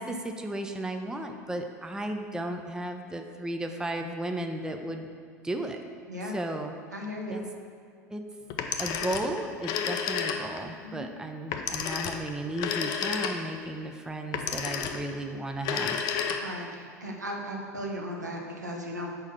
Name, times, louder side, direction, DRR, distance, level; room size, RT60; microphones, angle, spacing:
voice 1, 0.0-5.1 5.4-5.8 6.2-6.8 7.3-7.5 8.1-8.3 8.8-16.1, right 1 dB, 5° right, 5 dB, 0.5 m, -34 dB
voice 2, 6.9-7.4 10.8-11.1 16.4-16.7 17.0-19.1, equal, 90° right, 0 dB, 0.8 m, -36 dB
Telephone, 8.5-10.7 11.5-13.7 14.3-15.1 15.6-16.7, left 7 dB, 45° left, 0.5 m, -31 dB
4.8 x 4.4 x 5.8 m, 2.2 s
figure-of-eight pair, 80°, 9 cm